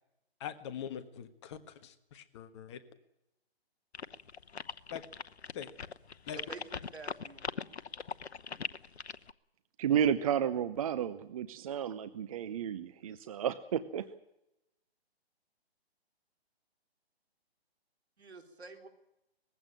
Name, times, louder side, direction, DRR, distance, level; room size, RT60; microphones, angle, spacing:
voice 1, 0.4-2.8 4.9-5.0 5.5-5.7 6.3-6.4, left 9 dB, 25° left, 9 dB, 1.4 m, -43 dB
sound 1, 3.9-9.3, left 6 dB, 85° left, 1.0 m, -40 dB
voice 2, 6.4-7.4 18.2-18.9, right 3 dB, 80° right, 7 dB, 3.9 m, -48 dB
voice 3, 9.8-14.2, right 9 dB, 35° right, 13 dB, 0.8 m, -32 dB
20.5 x 15.5 x 9.0 m, 0.87 s
hypercardioid pair, 150°, 32 cm